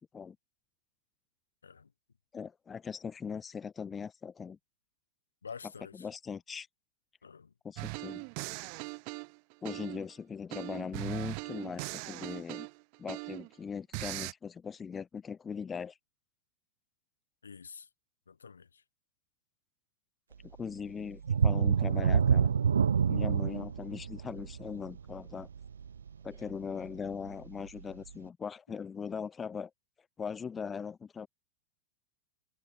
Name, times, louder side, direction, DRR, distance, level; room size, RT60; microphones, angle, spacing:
voice 1, 2.3-4.6 5.9-6.7 7.6-8.2 9.6-12.7 13.0-16.0 20.6-22.5 23.1-25.5 26.2-29.7 30.2-31.3, left 6 dB, 20° left, 4.6 m, -40 dB
voice 2, 5.4-6.1 7.2-7.5 17.4-17.9 18.3-18.8, left 6 dB, 75° left, 7.2 m, -48 dB
sound 1, 7.8-10.1 10.5-13.5 13.9-14.3, right 40 dB or more, 45° right, 2.4 m, -40 dB
sound 2, 21.2-26.7 27.1-27.3 27.8-27.9, right 7 dB, 70° right, 0.5 m, -27 dB
figure-of-eight pair, 90°, 0 cm